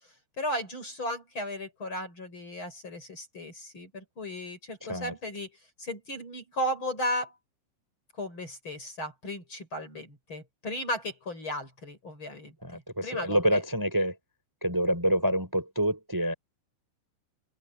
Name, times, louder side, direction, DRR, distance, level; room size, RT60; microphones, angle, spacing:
voice 1, 0.4-5.5 5.8-7.4 8.2-13.6, left 1 dB, 25° left, 6.6 m, -35 dB
voice 2, 12.6-14.1 14.6-16.3, equal, 5° right, 4.6 m, -27 dB
open air
omnidirectional pair, 5.5 m